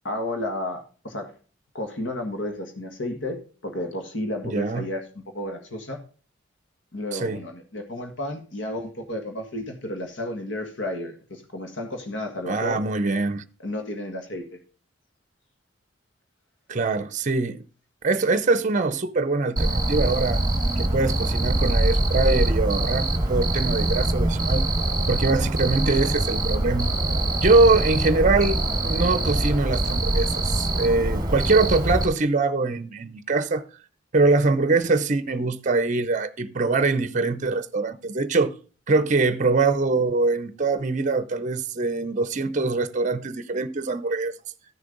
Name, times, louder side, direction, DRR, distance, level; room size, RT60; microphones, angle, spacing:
voice 1, 0.0-1.3 1.7-6.0 6.9-12.8 13.6-14.6, left 1 dB, 70° left, 1.6 m, -32 dB
voice 2, 4.4-4.9 7.1-7.4 12.4-13.4 16.7-17.6 18.0-20.4 20.8-24.7 25.1-26.9 27.4-33.7 34.1-38.6 38.9-44.3, right 3 dB, 40° right, 0.6 m, -23 dB
Cricket, 19.6-32.1, right 1 dB, 20° right, 1.4 m, -24 dB
13.5 x 6.6 x 3.9 m
head